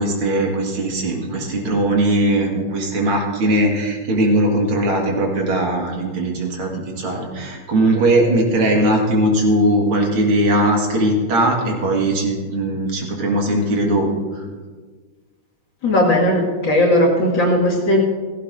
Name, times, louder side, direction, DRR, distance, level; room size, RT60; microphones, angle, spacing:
voice 1, 0.0-14.1, right 1 dB, 80° right, 0 dB, 2.8 m, -19 dB
voice 2, 15.8-18.0, left 1 dB, 60° left, -3 dB, 2.9 m, -17 dB
16.5 x 16.0 x 2.7 m, 1.5 s
omnidirectional pair, 2.3 m